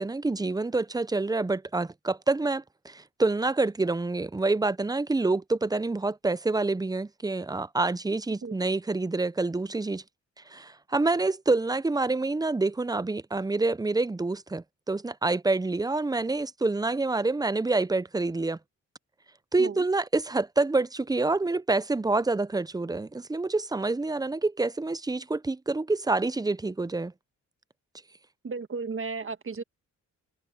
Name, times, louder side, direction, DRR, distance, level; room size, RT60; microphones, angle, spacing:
voice 1, 0.0-10.0 10.5-18.6 19.5-27.1, right 3 dB, 10° right, 0.6 m, -27 dB
voice 2, 28.4-29.6, right 4 dB, 40° right, 1.7 m, -34 dB
cardioid pair, 75°, 31 cm